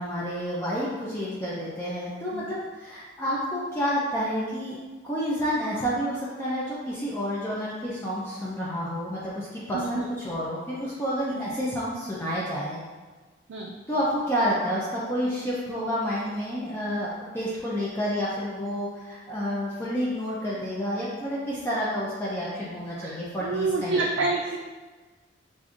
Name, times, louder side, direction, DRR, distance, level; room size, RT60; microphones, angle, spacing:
voice 1, 0.0-4.8 5.0-12.8 13.9-17.1 17.3-23.9, equal, 15° left, -8 dB, 0.5 m, -29 dB
voice 2, 23.4-24.6, right 3 dB, 75° right, -1 dB, 0.4 m, -28 dB
4.9 x 2.6 x 2.5 m, 1.3 s
head